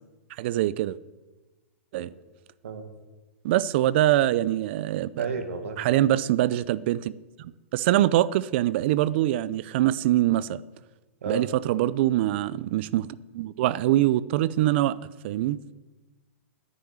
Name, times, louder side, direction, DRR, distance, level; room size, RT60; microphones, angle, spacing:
voice 1, 0.4-1.0 1.9-2.1 3.4-5.3 5.8-7.1 7.4-10.6 11.3-13.1 13.3-15.6, right 14 dB, 50° right, 0.5 m, -24 dB
voice 2, 5.2-5.8 11.2-11.5, right 4 dB, 75° right, 2.0 m, -32 dB
10.5 x 9.6 x 8.1 m
hypercardioid pair, 125°, 7 cm